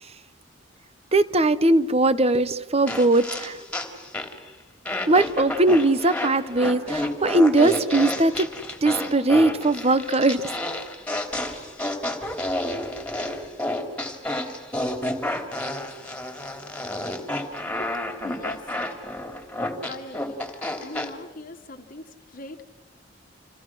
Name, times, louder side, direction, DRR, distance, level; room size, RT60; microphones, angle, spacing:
voice 1, 1.1-3.7 5.1-8.5 8.8-10.5, right 2 dB, 35° right, 14 dB, 1.0 m, -20 dB
sound 1, 2.9-4.5 4.9-21.1, left 1 dB, 5° left, 3.1 m, -30 dB
voice 2, 18.2-19.1 19.9-22.6, left 2 dB, 45° left, 6 dB, 1.6 m, -41 dB
29.5 x 28.0 x 6.2 m, 1.2 s
head